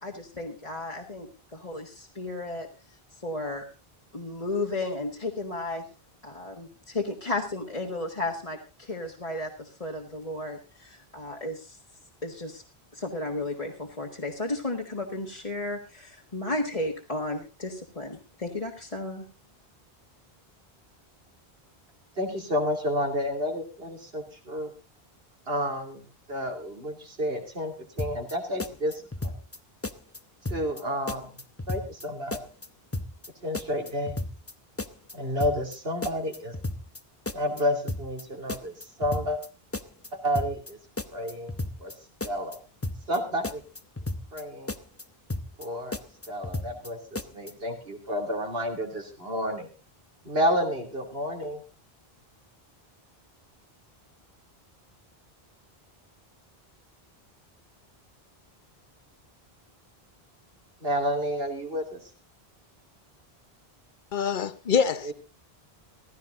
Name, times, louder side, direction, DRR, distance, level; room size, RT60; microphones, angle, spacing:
voice 1, 0.0-2.7 3.2-3.7 4.1-5.9 6.2-11.8 12.2-12.6 12.9-19.2, left 2 dB, 35° left, 1.8 m, -33 dB
voice 2, 22.2-24.7 25.5-26.0 26.3-29.3 30.5-31.3 31.7-32.4 33.4-34.2 35.1-36.5 37.3-39.4 40.1-40.8 41.1-41.9 42.2-42.6 43.1-43.6 44.3-44.7 45.6-46.0 46.3-49.7 50.2-51.6 60.8-62.0 65.0-65.1, equal, 70° right, 3.1 m, -30 dB
sound 1, 28.0-28.3 28.6-29.6 29.8-30.2 30.5-30.8 31.1-32.1 32.3-32.7 32.9-33.3 33.5-34.5 34.8-35.1 35.4-35.8 36.0-37.0 37.3-37.6 37.9-38.2 38.5-39.5 39.7-40.1 40.4-40.7 41.0-41.9 42.2-42.6 42.8-43.2 43.4-44.4 44.7-45.0 45.3-45.7 45.9-46.9 47.2-47.5, left 2 dB, 15° left, 0.7 m, -34 dB
voice 3, 64.1-65.1, left 6 dB, 55° left, 1.0 m, -25 dB
15.5 x 14.5 x 3.8 m
omnidirectional pair, 1.0 m